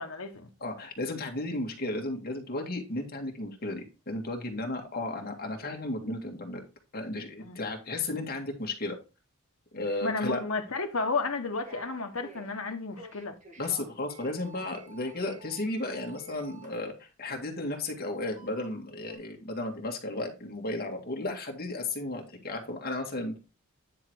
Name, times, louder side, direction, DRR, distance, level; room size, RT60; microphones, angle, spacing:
voice 1, 0.0-0.5 7.4-7.6 10.0-13.4, left 3 dB, 65° left, 1.1 m, -32 dB
voice 2, 0.6-6.6 6.9-9.0 9.7-10.4 13.6-23.4, left 2 dB, 45° left, 2.1 m, -34 dB
sound 1, 11.6-12.5 12.9-16.8 18.3-19.1, equal, 35° right, 1.9 m, -50 dB
9.8 x 4.0 x 4.7 m
head